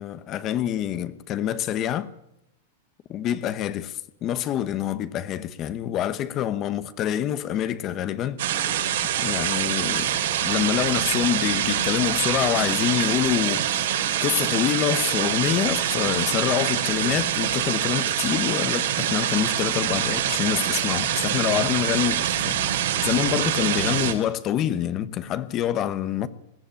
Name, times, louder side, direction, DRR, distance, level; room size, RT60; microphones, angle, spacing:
voice 1, 0.0-2.1 3.1-8.4 9.2-10.1 10.4-13.8 14.2-26.3, left 11 dB, 25° left, 1.0 m, -26 dB
sound 1, 8.4-24.1, right 10 dB, 70° right, 3.5 m, -25 dB
21.0 x 15.0 x 9.0 m
supercardioid pair, 160°, 0 cm